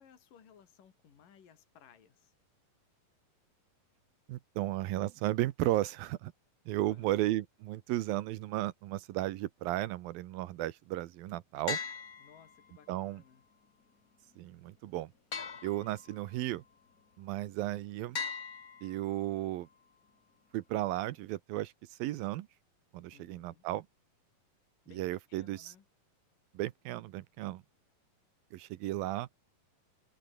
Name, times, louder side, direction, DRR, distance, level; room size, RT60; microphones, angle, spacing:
voice 1, 0.0-2.3 6.8-7.2 12.2-13.4 23.1-23.6 24.9-25.9, left 8 dB, 65° left, 4.7 m, -60 dB
voice 2, 4.3-6.3 6.7-11.8 12.9-13.2 14.4-15.1 15.6-16.6 17.2-18.2 18.8-19.7 20.5-22.5 22.9-23.9 24.9-25.7 26.5-27.6 28.5-29.3, right 15 dB, 80° right, 2.7 m, -34 dB
sound 1, 11.7-12.9 15.3-16.4 18.1-19.4, left 6 dB, 40° left, 1.2 m, -40 dB
omnidirectional pair, 4.2 m